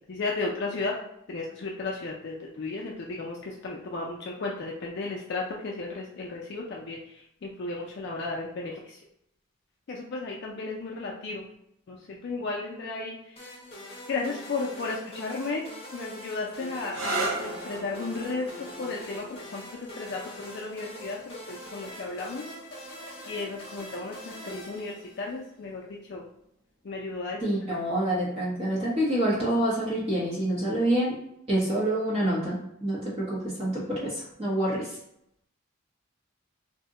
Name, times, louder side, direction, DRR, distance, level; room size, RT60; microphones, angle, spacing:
voice 1, 0.1-0.9 1.3-9.0 9.9-11.5 11.9-13.2 14.1-15.6 15.9-19.3 19.5-22.5 23.3-26.2 26.8-27.8, left 3 dB, 50° left, -2 dB, 0.3 m, -34 dB
sound 1, 13.4-25.5, equal, 25° left, 0.8 m, -43 dB
sound 2, 16.8-24.3 25.3-25.8 29.3-29.7, right 3 dB, 65° right, 0.9 m, -38 dB
voice 2, 27.4-31.1 31.5-35.0, right 1 dB, 25° right, -7 dB, 0.7 m, -27 dB
2.7 x 2.1 x 3.6 m, 0.76 s
head